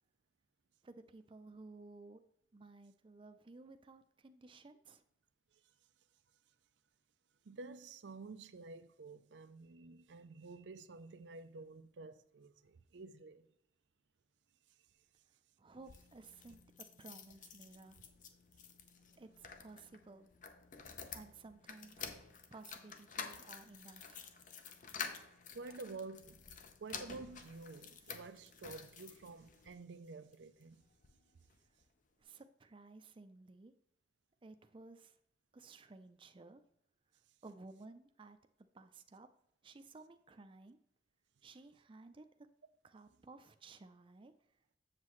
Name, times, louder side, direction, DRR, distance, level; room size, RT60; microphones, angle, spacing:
voice 1, 0.8-2.2 2.5-5.0 15.6-16.6 17.0-18.0 19.2-20.3 21.1-22.1 22.5-24.5 32.2-33.7 34.4-35.2 35.5-36.6 37.4-38.4 38.7-39.3 39.6-40.8 41.4-42.3 42.8-44.3, right 3 dB, 30° right, 0.4 m, -56 dB
voice 2, 7.4-13.5 25.5-26.4 26.8-30.9, right 3 dB, 90° right, 0.5 m, -50 dB
sound 1, 15.7-29.7 30.3-31.2 31.5-31.6 31.8-31.9, left 6 dB, 45° left, 0.7 m, -50 dB
7.5 x 7.3 x 3.1 m
head